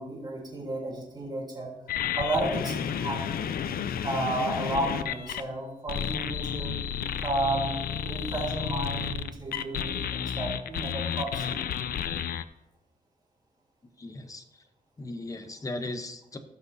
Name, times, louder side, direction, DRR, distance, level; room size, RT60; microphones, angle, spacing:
voice 1, 0.0-1.7 2.2-3.6 4.0-6.9 7.2-7.7 8.0-11.6, right 2 dB, 30° right, -2 dB, 3.2 m, -32 dB
sound 1, 1.9-5.4 5.9-12.4, left 8 dB, 85° left, 0.5 m, -31 dB
voice 2, 14.0-14.4 15.0-16.4, left 2 dB, 20° left, 7 dB, 0.8 m, -37 dB
17.5 x 6.1 x 2.7 m, 0.89 s
wide cardioid pair, 125°, 15 cm